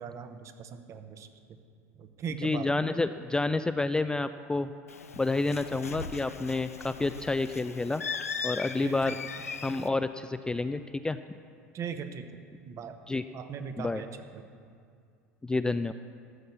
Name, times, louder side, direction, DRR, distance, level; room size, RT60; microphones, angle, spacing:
voice 1, 0.0-1.6 1.9-2.7 8.8-9.2 11.7-12.3 12.6-12.9 13.3-14.4, right 7 dB, 40° right, 8 dB, 0.9 m, -39 dB
voice 2, 2.4-4.7 5.2-8.0 8.4-9.1 9.6-11.2 13.1-13.2 13.8-14.0 15.4-15.9, left 3 dB, 10° left, 10 dB, 0.3 m, -29 dB
Bird, 4.9-9.9, left 5 dB, 85° left, 0.4 m, -39 dB
13.0 x 6.6 x 7.0 m, 2.3 s
figure-of-eight pair, 75°, 8 cm